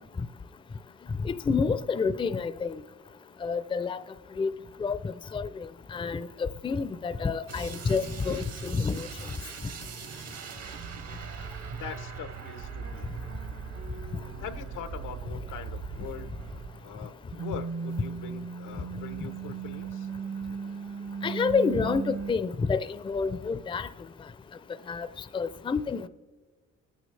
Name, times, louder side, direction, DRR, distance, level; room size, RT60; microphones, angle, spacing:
voice 1, 1.2-2.8 3.4-4.0 4.4-4.5 4.8-5.6 5.9-9.1 21.2-22.8 23.0-23.9 24.9-25.1 25.3-26.1, left 5 dB, 15° left, 0.4 m, -28 dB
sound 1, 7.5-17.0 17.3-22.3, right 6 dB, 55° right, 0.9 m, -38 dB
voice 2, 11.7-13.4 14.4-16.3 16.8-20.1, left 7 dB, 90° left, 0.9 m, -42 dB
25.0 x 9.3 x 3.3 m
cardioid pair, 90°, 30 cm